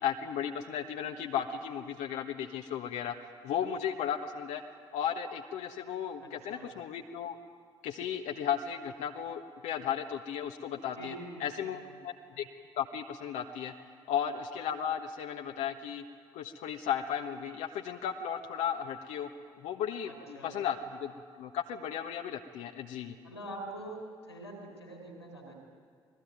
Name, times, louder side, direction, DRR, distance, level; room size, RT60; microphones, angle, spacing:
voice 1, 0.0-3.1 3.4-4.6 4.9-7.4 7.8-11.1 11.4-12.5 12.8-13.7 14.1-16.0 16.3-19.3 19.6-21.1 21.4-23.1, left 8 dB, 60° left, 4 dB, 1.3 m, -35 dB
voice 2, 6.2-6.7 10.9-12.0 20.0-20.6 23.2-25.6, right 1 dB, 85° left, 3 dB, 4.1 m, -45 dB
26.5 x 20.5 x 9.3 m, 2.1 s
figure-of-eight pair, 40°, 14 cm